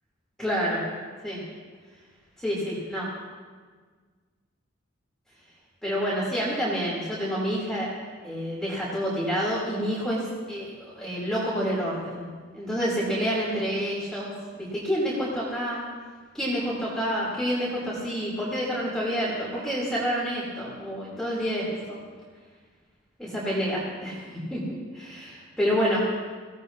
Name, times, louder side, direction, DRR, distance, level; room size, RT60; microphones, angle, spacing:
voice 1, 0.4-0.8 1.2-1.4 2.4-3.1 5.8-7.9 8.2-12.3 12.5-15.8 16.3-22.0 23.2-26.2, equal, 5° left, -7 dB, 3.3 m, -28 dB
24.5 x 17.0 x 2.8 m, 1.5 s
head